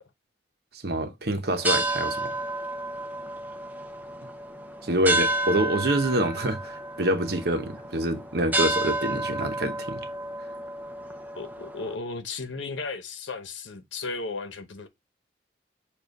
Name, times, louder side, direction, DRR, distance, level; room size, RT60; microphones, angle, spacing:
voice 1, 0.7-2.4 4.8-10.1, right 1 dB, 55° right, 0.8 m, -26 dB
sound 1, 1.5-12.0, right 1 dB, 10° right, 0.5 m, -31 dB
voice 2, 11.3-14.9, left 3 dB, 85° left, 1.0 m, -35 dB
7.2 x 2.5 x 5.3 m
head